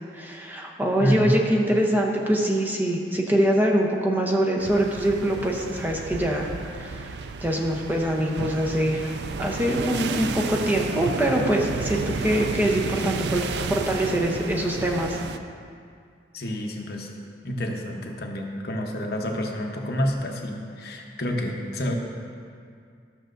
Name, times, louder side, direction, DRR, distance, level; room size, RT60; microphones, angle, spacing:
voice 1, 0.1-9.1 9.4-15.2, right 1 dB, 10° right, -1 dB, 0.6 m, -24 dB
voice 2, 1.0-1.3 16.3-17.1 17.4-21.9, equal, 60° left, 1 dB, 0.9 m, -28 dB
sound 1, 4.6-15.4, right 4 dB, 65° right, 0.4 m, -32 dB
13.5 x 6.4 x 2.5 m, 2.3 s
head